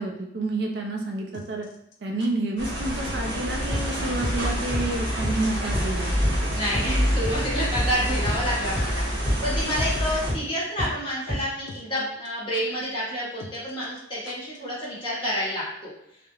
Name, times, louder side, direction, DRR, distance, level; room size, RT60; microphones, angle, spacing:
voice 1, 0.0-1.7 2.0-6.5, right 2 dB, 60° right, 1 dB, 0.4 m, -29 dB
sound 1, 1.3-2.3 3.1-3.4 3.6-3.7 3.9-4.2 4.5-4.6 4.8-5.1 5.4-5.5 5.6-5.7 6.5-7.7 7.9-8.0 8.2-8.8 9.1-9.2 10.0-10.3 10.5-11.1 11.4-11.5 11.7-12.0 12.2-12.3 12.5-12.6 13.4-14.6 14.8-14.9, left 3 dB, 65° left, 0.3 m, -43 dB
sound 2, 2.6-10.3, equal, 80° right, 0.9 m, -27 dB
sound 3, 3.7-3.8 4.2-4.3 4.7-4.8 5.2-5.3 5.7-5.8 6.2-6.3 6.7-6.8 7.2-7.3 7.7-7.8 8.3-8.4 8.8-8.9 9.3-9.4 9.8-9.9 10.3-10.4 10.8-10.9 11.3-11.4, left 1 dB, 5° right, 1.2 m, -27 dB
voice 2, 6.5-15.9, equal, 25° left, -7 dB, 0.9 m, -29 dB
2.3 x 2.0 x 3.0 m, 0.76 s
head